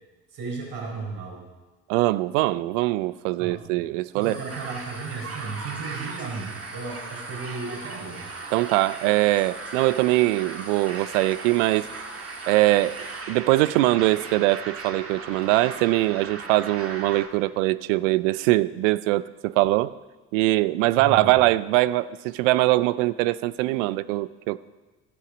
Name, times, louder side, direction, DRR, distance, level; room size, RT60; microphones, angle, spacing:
voice 1, 0.3-1.5 3.4-3.9 4.1-8.3 21.0-21.3, right 4 dB, 70° right, -1 dB, 4.3 m, -34 dB
voice 2, 1.9-4.4 8.5-11.9 12.5-19.9 20.3-24.6, right 18 dB, 85° right, 18 dB, 0.5 m, -22 dB
sound 1, 4.2-13.2, equal, 5° right, 2.2 m, -46 dB
sound 2, 4.5-17.3, right 4 dB, 40° right, 1.5 m, -38 dB
12.5 x 8.2 x 6.1 m, 1.2 s
supercardioid pair, 70°, 36 cm